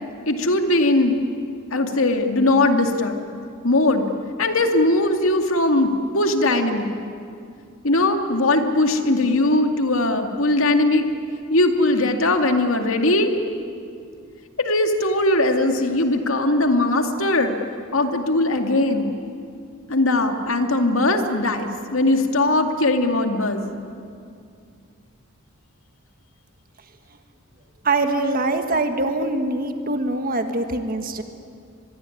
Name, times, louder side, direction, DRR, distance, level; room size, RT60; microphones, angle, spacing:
voice 1, 0.3-1.2 1.7-3.2 3.6-4.1 4.4-6.9 7.8-11.1 11.5-13.3 14.6-17.6 17.9-19.1 19.9-23.7, left 2 dB, 75° left, 5 dB, 2.3 m, -20 dB
voice 2, 27.8-31.2, right 2 dB, 45° right, 7 dB, 1.5 m, -23 dB
25.0 x 22.5 x 9.9 m, 2.4 s
head